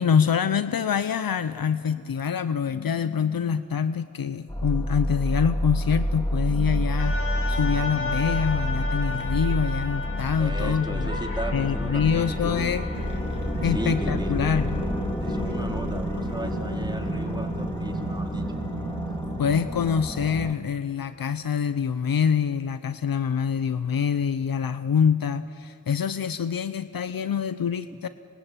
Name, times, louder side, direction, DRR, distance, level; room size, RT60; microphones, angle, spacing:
voice 1, 0.0-7.2 7.5-11.2 11.5-12.9 13.6-14.9 19.4-28.1, left 7 dB, 80° left, 12 dB, 0.8 m, -25 dB
sound 1, 4.5-20.5, equal, 10° left, 2.3 m, -29 dB
sound 2, 7.0-17.2 17.8-17.9, left 3 dB, 40° left, 5.0 m, -36 dB
voice 2, 10.4-12.7 13.7-14.4 15.2-18.4, right 1 dB, 10° right, 2 dB, 4.1 m, -35 dB
sound 3, 12.9-19.7, right 4 dB, 55° right, 2.6 m, -34 dB
26.0 x 23.0 x 9.0 m, 2.4 s
cardioid pair, 50°, 34 cm